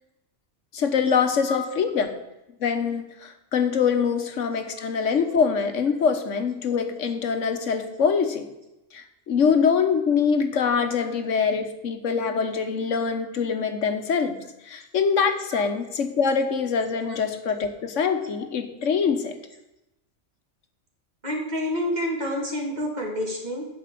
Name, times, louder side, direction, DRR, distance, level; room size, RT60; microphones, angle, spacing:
voice 1, 0.7-2.1 2.6-8.5 8.9-14.4 14.6-19.4, left 6 dB, 90° left, 7 dB, 1.4 m, -24 dB
voice 2, 21.2-23.7, left 1 dB, 35° right, -1 dB, 2.6 m, -28 dB
12.0 x 5.1 x 8.4 m, 0.94 s
omnidirectional pair, 1.2 m